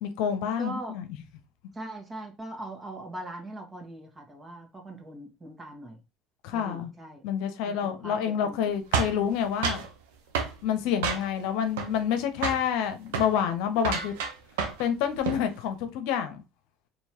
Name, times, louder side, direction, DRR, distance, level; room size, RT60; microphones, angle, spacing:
voice 1, 0.0-1.2 6.4-6.9 7.2-9.8 10.6-14.1 14.8-16.4, left 8 dB, 75° left, 0.7 m, -28 dB
voice 2, 0.6-0.9 1.7-6.0 6.5-7.2 7.7-8.7, right 1 dB, 25° right, 1.7 m, -41 dB
sound 1, 8.9-9.9 10.3-10.6 11.0-11.5 11.8-12.2 12.4-12.7 13.1-13.3 13.8-14.9 15.1-15.5, right 5 dB, 80° right, 0.9 m, -29 dB
4.5 x 3.1 x 2.9 m
hypercardioid pair, 70°, 0 cm